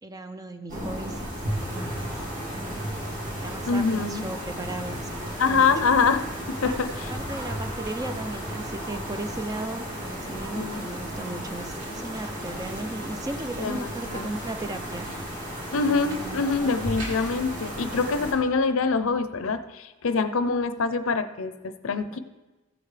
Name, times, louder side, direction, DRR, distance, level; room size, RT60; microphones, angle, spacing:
voice 1, 0.0-1.2 1.5-2.9 3.4-5.9 6.4-6.8 7.1-15.1 15.8-16.5 22.1-22.2, right 2 dB, 15° right, 8 dB, 0.4 m, -37 dB
sound 1, 0.7-18.3, equal, 40° right, 2.2 m, -34 dB
voice 2, 3.7-4.2 5.4-7.1 10.5-10.8 13.6-14.3 15.7-22.2, left 4 dB, 75° left, 11 dB, 0.6 m, -25 dB
15.0 x 8.0 x 3.3 m, 1.2 s
head